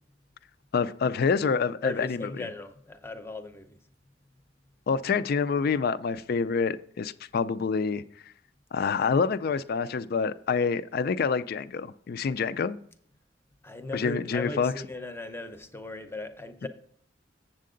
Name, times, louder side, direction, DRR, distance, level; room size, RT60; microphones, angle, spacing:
voice 1, 0.7-2.5 4.9-8.0 8.7-12.8 13.9-14.7 16.6-16.7, left 5 dB, 50° left, 15 dB, 0.4 m, -27 dB
voice 2, 1.8-3.8 13.6-16.7, left 2 dB, 15° left, 8 dB, 0.6 m, -37 dB
7.5 x 7.4 x 3.8 m, 0.63 s
head